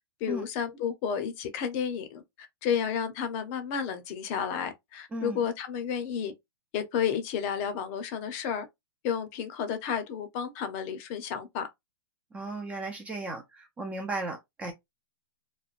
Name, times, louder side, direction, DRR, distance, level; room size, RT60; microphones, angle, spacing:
voice 1, 0.2-2.2 2.6-6.3 6.7-8.7 9.0-11.7, left 7 dB, 35° left, 0.6 m, -31 dB
voice 2, 5.1-5.4 12.3-14.7, right 2 dB, 10° right, 0.4 m, -35 dB
3.1 x 2.1 x 2.4 m
hypercardioid pair, 155°, 13 cm